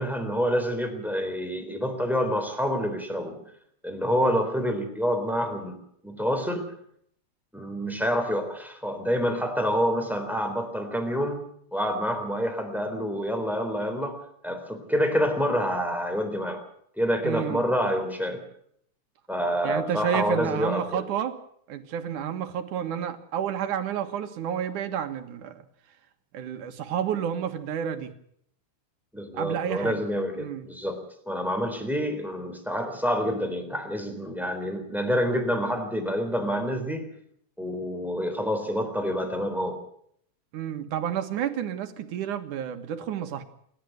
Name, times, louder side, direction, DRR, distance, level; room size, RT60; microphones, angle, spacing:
voice 1, 0.0-3.4 3.8-5.8 6.0-6.7 7.5-11.4 11.7-16.6 17.0-18.4 19.3-21.0 29.1-31.0 31.3-37.1 37.6-39.8, equal, ahead, 6 dB, 3.3 m, -27 dB
voice 2, 17.2-17.6 19.6-21.4 21.7-25.7 26.3-28.1 29.3-30.0 30.4-30.7 40.5-43.4, right 9 dB, 85° right, 8 dB, 3.0 m, -30 dB
28.0 x 12.0 x 7.9 m, 0.67 s
omnidirectional pair, 3.4 m